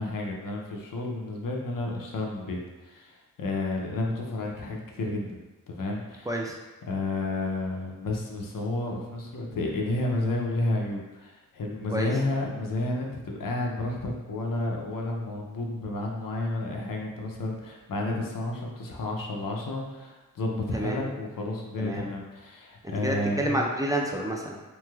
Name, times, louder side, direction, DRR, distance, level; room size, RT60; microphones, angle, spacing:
voice 1, 0.0-2.6 2.8-6.3 6.8-23.6, left 2 dB, 80° left, 0 dB, 0.6 m, -31 dB
voice 2, 22.8-24.6, right 1 dB, 10° right, -1 dB, 0.4 m, -29 dB
3.1 x 2.9 x 2.3 m, 1.1 s
cardioid pair, 40°, 33 cm